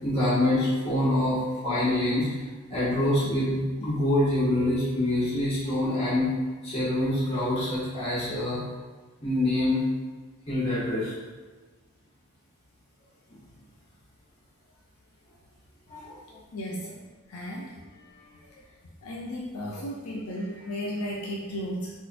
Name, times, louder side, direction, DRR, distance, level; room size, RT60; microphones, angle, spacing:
voice 1, 0.0-2.4 2.7-6.3 6.6-8.6 9.2-9.8 10.5-11.1 15.9-16.2, left 1 dB, 25° left, -10 dB, 1.5 m, -25 dB
voice 2, 16.5-16.9 17.3-18.6 19.0-21.9, equal, 75° left, -3 dB, 0.5 m, -35 dB
3.9 x 3.0 x 2.4 m, 1.3 s
head